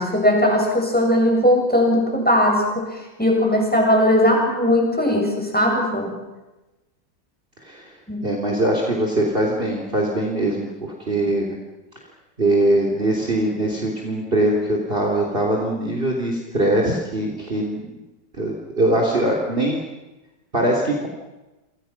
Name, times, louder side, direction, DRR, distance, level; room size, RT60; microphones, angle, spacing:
voice 1, 0.0-2.9 3.2-6.1 8.1-8.2 11.2-11.3, left 1 dB, 5° left, 0 dB, 7.7 m, -19 dB
voice 2, 8.2-11.5 12.4-18.0 18.4-19.8 20.5-21.1, right 1 dB, 30° right, 0 dB, 3.7 m, -22 dB
30.0 x 26.5 x 6.1 m, 1.0 s
omnidirectional pair, 2.0 m